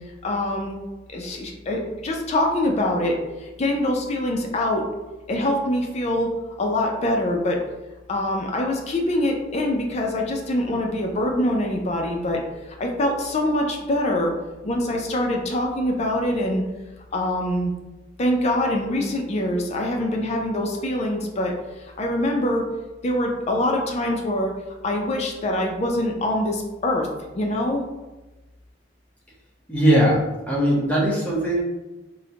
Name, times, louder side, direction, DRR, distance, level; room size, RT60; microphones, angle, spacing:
voice 1, 0.2-0.8 1.1-4.8 5.3-6.3 6.6-7.6 8.1-12.4 12.7-14.3 14.6-16.6 17.1-17.7 18.2-22.7 23.0-24.5 24.8-27.1 27.3-27.8, left 1 dB, 35° left, 1 dB, 0.4 m, -24 dB
voice 2, 29.7-31.6, equal, 10° left, -5 dB, 0.7 m, -20 dB
3.9 x 2.1 x 2.8 m, 1.1 s
head